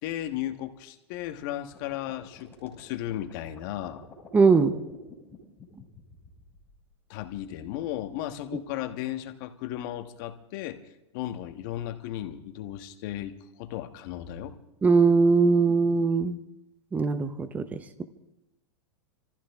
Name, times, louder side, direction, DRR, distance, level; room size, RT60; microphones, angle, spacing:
voice 1, 0.0-4.0 7.1-10.8 11.1-14.6, left 12 dB, 45° left, 8 dB, 1.3 m, -35 dB
sound 1, 1.7-6.9, left 5 dB, 15° left, 7.4 m, -50 dB
voice 2, 4.3-4.8 14.8-16.4 16.9-18.0, right 4 dB, 10° right, 12 dB, 0.7 m, -21 dB
26.5 x 15.0 x 3.5 m, 0.89 s
supercardioid pair, 150°, 15 cm